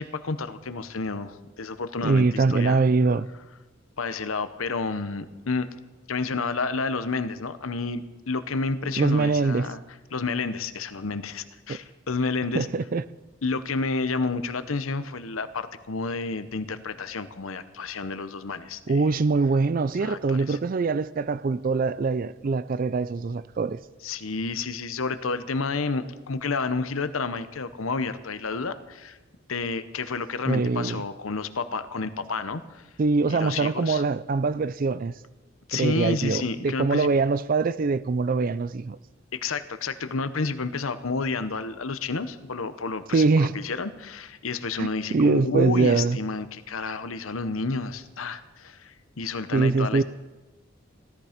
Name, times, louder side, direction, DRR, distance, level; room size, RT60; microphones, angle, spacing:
voice 1, 0.0-2.8 4.0-5.7 6.1-9.8 10.1-12.7 13.4-19.1 19.9-20.6 24.0-29.2 29.5-32.8 33.3-34.0 35.7-37.1 39.3-50.0, left 4 dB, 85° left, 0.9 m, -30 dB
voice 2, 2.0-3.3 9.0-9.7 12.5-13.0 18.9-23.8 30.5-31.0 33.0-35.1 35.7-39.0 43.1-43.6 44.8-46.2 49.5-50.0, right 4 dB, 45° right, 0.4 m, -23 dB
16.5 x 13.5 x 5.1 m
head